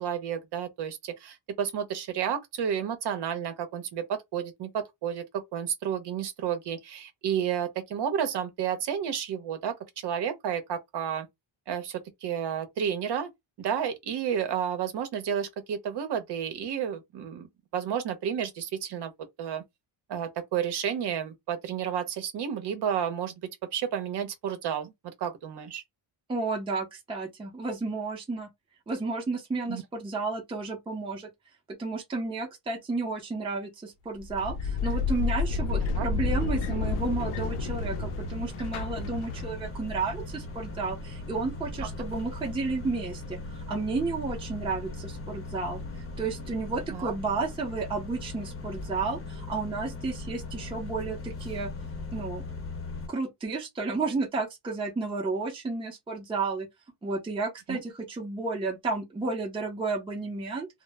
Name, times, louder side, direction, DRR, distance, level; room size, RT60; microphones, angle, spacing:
voice 1, 0.0-11.3 11.7-13.3 13.6-19.1 19.4-19.6 20.1-23.4 23.7-25.8 29.7-29.8 36.0-36.1 46.9-47.1 57.7-57.8, right 8 dB, 55° right, 0.7 m, -31 dB
voice 2, 26.3-28.5 28.9-31.3 31.7-51.7 52.1-52.5 53.1-56.7 57.0-60.7, right 3 dB, 10° right, 0.6 m, -32 dB
sound 1, 34.2-39.8, left 4 dB, 80° left, 0.6 m, -30 dB
sound 2, 36.8-53.1, left 2 dB, 30° left, 0.7 m, -39 dB
2.0 x 2.0 x 3.3 m
cardioid pair, 150°, 49 cm